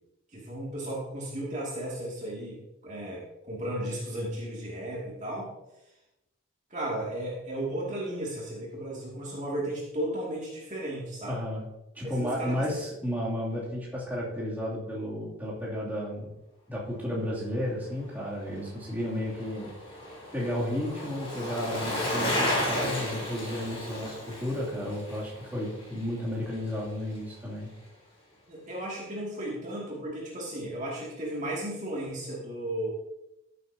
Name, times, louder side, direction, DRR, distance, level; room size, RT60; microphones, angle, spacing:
voice 1, 0.3-5.5 6.7-11.4 12.0-12.7 28.5-32.9, right 1 dB, 35° right, -4 dB, 2.4 m, -35 dB
voice 2, 11.3-11.7 11.9-16.3 16.7-19.7 20.3-27.7, equal, 10° right, -7 dB, 2.8 m, -33 dB
Bicycle, 18.4-26.8 27.1-27.2, left 1 dB, 30° left, 3.6 m, -34 dB
14.5 x 8.3 x 2.8 m, 0.90 s
head